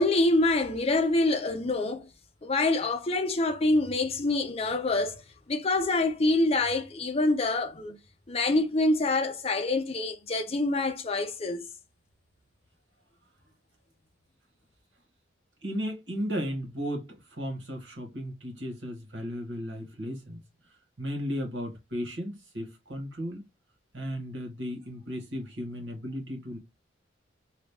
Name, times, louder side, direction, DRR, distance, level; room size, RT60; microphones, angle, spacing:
voice 1, 0.0-2.1 2.4-5.2 5.5-8.0 8.3-11.6, left 2 dB, 30° left, 0.5 m, -26 dB
voice 2, 15.6-20.4 21.0-23.5 23.9-26.6, equal, 75° right, 1.3 m, -35 dB
3.0 x 2.4 x 3.4 m
head